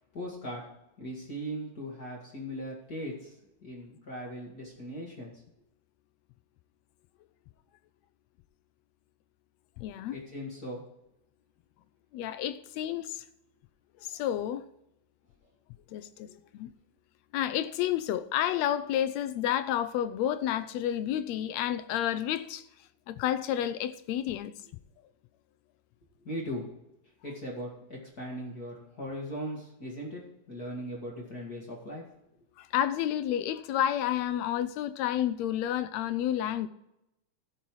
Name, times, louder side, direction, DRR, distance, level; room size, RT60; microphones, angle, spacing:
voice 1, 0.1-0.6 1.0-3.4 3.6-5.4 10.1-10.8 26.2-26.7 27.2-32.0, equal, 35° left, 2.5 m, -39 dB
voice 2, 9.8-10.2 12.1-13.2 14.0-14.7 15.9-16.7 17.3-22.6 23.1-24.5 32.6-36.7, left 11 dB, 80° left, 1.7 m, -30 dB
16.0 x 5.6 x 4.7 m
omnidirectional pair, 3.4 m